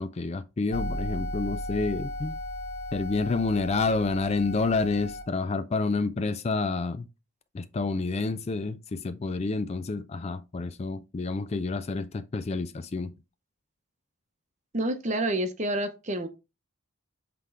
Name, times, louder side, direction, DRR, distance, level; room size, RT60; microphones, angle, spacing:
voice 1, 0.0-2.4 2.9-7.1 7.5-13.1, left 3 dB, 30° left, 0.3 m, -29 dB
sound 1, 0.7-5.2, left 1 dB, 80° left, 1.8 m, -35 dB
voice 2, 14.7-16.3, right 1 dB, 35° right, 0.8 m, -28 dB
7.6 x 3.7 x 3.4 m
head